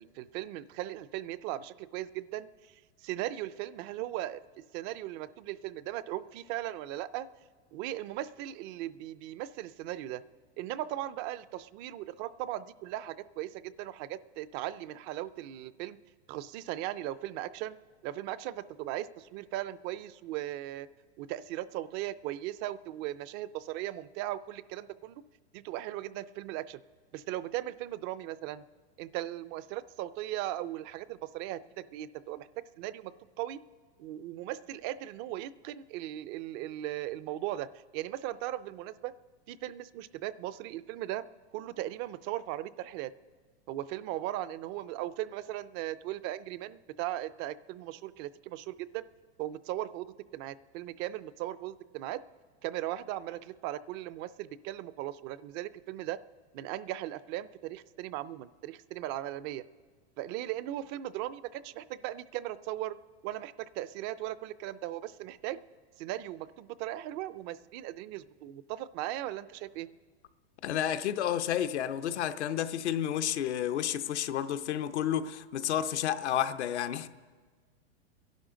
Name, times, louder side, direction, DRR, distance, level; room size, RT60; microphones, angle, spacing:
voice 1, 0.0-2.7 3.0-4.4 4.7-7.3 7.7-10.2 10.6-16.0 16.3-17.8 18.0-20.9 21.2-25.2 25.5-26.8 27.1-28.6 29.0-32.5 32.8-33.1 33.4-33.6 34.0-39.1 39.5-41.2 41.5-43.1 43.7-49.1 49.4-52.2 52.6-56.2 56.5-59.6 60.2-63.0 63.2-65.6 66.0-69.9, right 14 dB, 35° right, 0.4 m, -38 dB
voice 2, 70.6-77.1, left 10 dB, 80° left, 0.8 m, -31 dB
29.0 x 11.5 x 3.8 m
hypercardioid pair, 120°, 34 cm